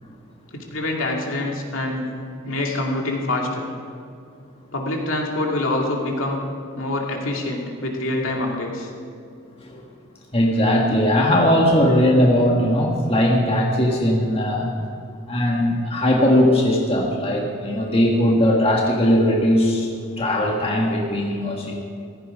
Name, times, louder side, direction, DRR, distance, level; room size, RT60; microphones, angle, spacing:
voice 1, 0.5-2.1 2.4-3.7 4.7-6.5 6.8-8.9, left 2 dB, 70° left, 0 dB, 2.4 m, -25 dB
voice 2, 10.3-14.7 15.3-19.9 20.2-21.8, equal, 30° left, -1 dB, 1.6 m, -19 dB
15.5 x 14.5 x 5.1 m, 2.4 s
head